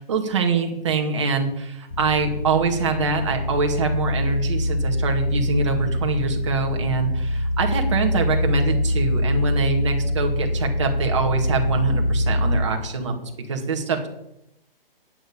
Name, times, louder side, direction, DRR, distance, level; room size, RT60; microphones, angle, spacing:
voice 1, 0.0-14.1, right 4 dB, 30° right, 3 dB, 2.1 m, -24 dB
sound 1, 1.9-12.6, left 1 dB, 30° left, 1.6 m, -24 dB
9.4 x 9.0 x 8.8 m, 0.83 s
hypercardioid pair, 180°, 29 cm